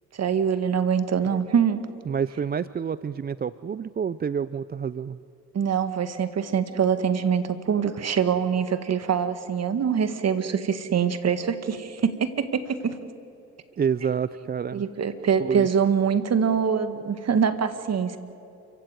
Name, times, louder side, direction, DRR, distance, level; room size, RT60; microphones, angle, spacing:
voice 1, 0.2-1.8 5.5-13.0 14.7-18.2, right 7 dB, 50° right, 10 dB, 2.0 m, -24 dB
voice 2, 2.1-5.2 13.8-14.8 15.4-15.7, right 7 dB, 30° right, 16 dB, 0.5 m, -28 dB
29.0 x 15.5 x 9.2 m, 2.7 s
supercardioid pair, 70°, 34 cm